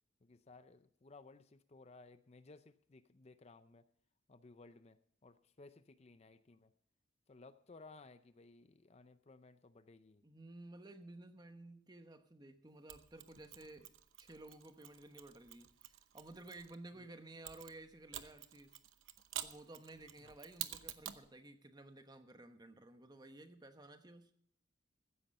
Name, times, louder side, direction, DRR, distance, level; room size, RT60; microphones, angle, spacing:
voice 1, 0.2-3.8 4.3-6.7 7.3-10.2 17.0-17.1 20.2-20.3, left 3 dB, 35° left, 12 dB, 0.5 m, -59 dB
voice 2, 10.2-18.8 19.4-24.3, right 2 dB, 20° right, 8 dB, 1.0 m, -55 dB
Mechanisms, 12.9-16.7 17.4-21.3, right 12 dB, 85° right, 0.8 m, -49 dB
15.0 x 9.8 x 5.4 m, 0.63 s
head